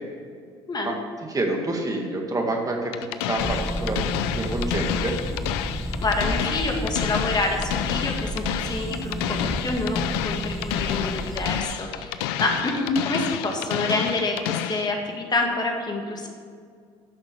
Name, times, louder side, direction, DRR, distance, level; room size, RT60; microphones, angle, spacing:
voice 1, 1.3-5.1, right 2 dB, 25° right, 2 dB, 1.9 m, -28 dB
sound 1, 2.9-14.9, left 11 dB, 85° left, 0.5 m, -29 dB
sound 2, 3.4-11.6, right 1 dB, ahead, 1.5 m, -31 dB
voice 2, 6.0-10.0 10.2-16.3, left 2 dB, 30° left, 2 dB, 1.9 m, -27 dB
11.5 x 6.5 x 7.0 m, 2.2 s
supercardioid pair, 70°, 13 cm